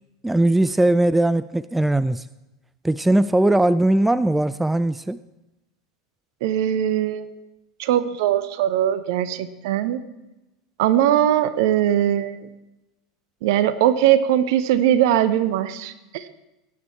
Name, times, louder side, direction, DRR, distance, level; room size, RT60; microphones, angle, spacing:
voice 1, 0.2-2.3 2.8-5.2, right 1 dB, 5° right, 16 dB, 0.3 m, -19 dB
voice 2, 6.4-7.3 7.8-10.0 10.8-12.4 13.4-16.3, right 11 dB, 60° right, 13 dB, 0.9 m, -20 dB
17.5 x 9.4 x 4.4 m, 0.97 s
figure-of-eight pair, 85°, 2 cm